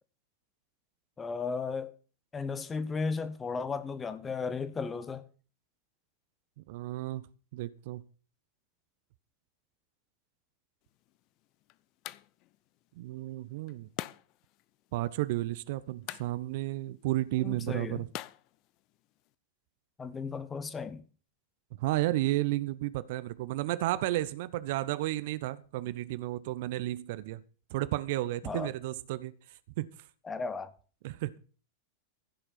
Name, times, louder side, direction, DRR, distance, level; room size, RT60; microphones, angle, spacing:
voice 1, 1.2-1.9 2.3-5.2 17.4-18.1 20.0-21.0 28.4-28.7 30.2-30.7, left 5 dB, 15° left, 1.2 m, -35 dB
voice 2, 6.7-7.3 7.5-8.0 13.0-13.9 14.9-18.1 21.8-27.4 27.7-29.3 29.8-29.9 31.0-31.4, right 16 dB, 50° right, 0.7 m, -32 dB
sound 1, 10.8-19.3, left 17 dB, 40° left, 0.5 m, -48 dB
15.5 x 6.8 x 5.7 m
figure-of-eight pair, 90°, 0 cm